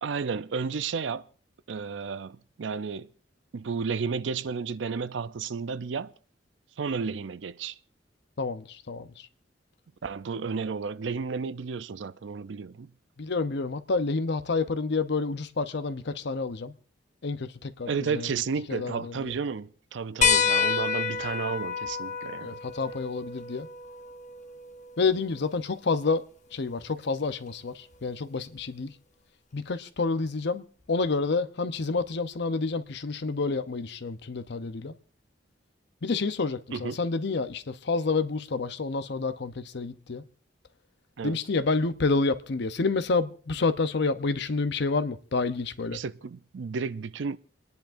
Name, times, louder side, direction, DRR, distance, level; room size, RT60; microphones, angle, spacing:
voice 1, 0.0-1.3 1.7-3.1 3.5-6.1 6.8-7.8 10.0-12.9 17.9-22.6 36.7-37.0 41.2-41.4 45.9-47.4, right 5 dB, 75° right, 0.5 m, -32 dB
voice 2, 8.4-9.1 13.2-16.7 17.2-18.3 18.7-19.3 22.4-23.7 25.0-26.2 26.5-28.9 29.5-34.9 36.0-40.2 41.2-46.0, left 4 dB, 65° left, 0.7 m, -29 dB
sound 1, 20.2-25.3 26.8-26.9 28.6-28.7, left 6 dB, 40° left, 0.9 m, -29 dB
29.5 x 10.5 x 2.6 m
head